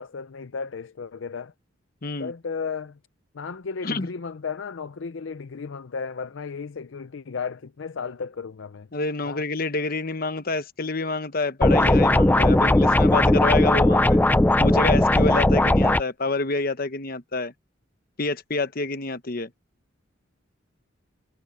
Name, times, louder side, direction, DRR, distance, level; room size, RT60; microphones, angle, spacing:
voice 1, 0.0-1.5 2.2-3.0 3.3-8.9 9.2-9.4, left 5 dB, 70° left, 0.5 m, -34 dB
voice 2, 2.0-2.3 3.8-4.1 8.9-14.2 14.6-17.5 18.2-19.5, left 3 dB, 45° left, 1.0 m, -28 dB
sound 1, 11.6-16.0, left 1 dB, 10° left, 0.3 m, -18 dB
head